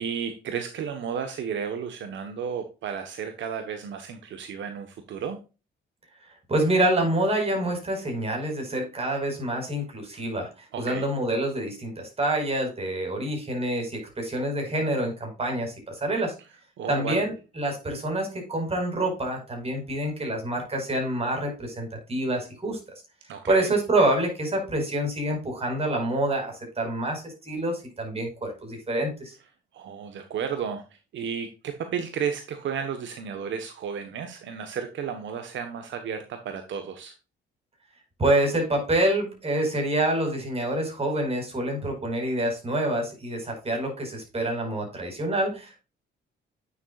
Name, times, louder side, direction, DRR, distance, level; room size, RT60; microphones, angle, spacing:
voice 1, 0.0-5.4 10.7-11.0 16.8-17.3 23.3-23.7 29.7-37.1, right 7 dB, 70° right, 7 dB, 1.2 m, -33 dB
voice 2, 6.5-16.3 16.9-22.8 23.5-29.3 38.2-45.8, right 1 dB, 30° right, 2 dB, 5.0 m, -27 dB
9.1 x 7.1 x 2.4 m, 0.30 s
cardioid pair, 90°, 20 cm